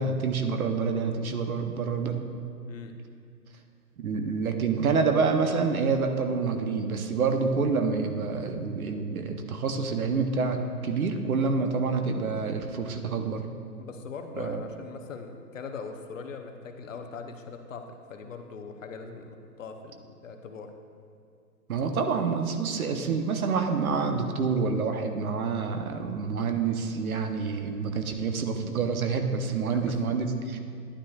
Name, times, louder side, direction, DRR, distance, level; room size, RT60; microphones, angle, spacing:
voice 1, 0.0-2.2 4.0-13.5 14.4-14.6 21.7-30.6, right 5 dB, 60° right, 6 dB, 0.9 m, -27 dB
voice 2, 13.8-20.7 29.7-29.9, left 5 dB, 50° left, 5 dB, 0.8 m, -41 dB
12.0 x 9.9 x 2.4 m, 2.3 s
hypercardioid pair, 155°, 49 cm